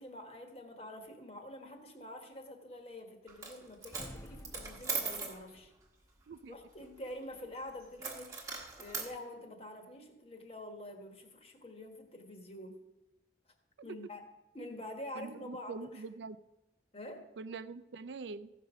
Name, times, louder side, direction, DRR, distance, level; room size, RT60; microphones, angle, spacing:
voice 1, 0.0-5.7 6.5-12.8 13.5-13.6 13.8-14.2 14.5-16.0 16.9-17.3, left 1 dB, 35° left, 4 dB, 1.3 m, -47 dB
Coin (dropping), 3.3-3.6 3.8-5.4 8.0-9.1, right 5 dB, 20° right, 1.3 m, -39 dB
sound 1, 3.9-5.6, left 1 dB, 15° left, 0.5 m, -50 dB
voice 2, 15.2-16.4 17.4-18.5, right 4 dB, 75° right, 14 dB, 0.4 m, -44 dB
15.0 x 5.2 x 6.2 m, 0.99 s
head